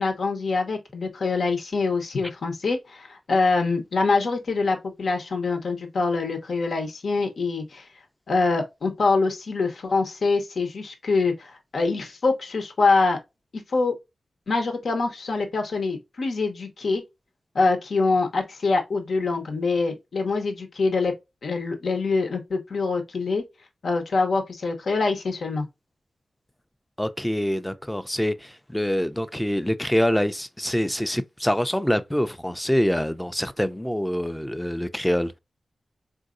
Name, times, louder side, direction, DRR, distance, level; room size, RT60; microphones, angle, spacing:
voice 1, 0.0-7.8 8.3-13.2 13.7-13.9 14.5-17.0 17.5-21.1 21.4-23.4 23.8-25.7, left 3 dB, 75° left, 0.8 m, -24 dB
voice 2, 27.0-35.3, equal, 10° left, 0.5 m, -25 dB
3.9 x 2.6 x 2.4 m
cardioid pair, 40°, 0 cm